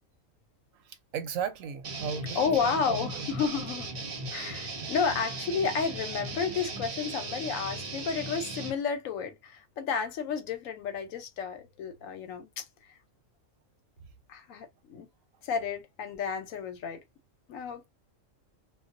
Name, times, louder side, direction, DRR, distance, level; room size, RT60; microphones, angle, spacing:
voice 1, 1.1-3.3, right 7 dB, 85° right, 1.0 m, -35 dB
sound 1, 1.8-8.7, right 3 dB, 50° right, 0.8 m, -37 dB
voice 2, 2.3-3.9 4.3-13.0 14.3-15.1 15.4-17.0 17.5-17.9, left 6 dB, 80° left, 1.1 m, -32 dB
2.3 x 2.3 x 2.4 m
omnidirectional pair, 1.4 m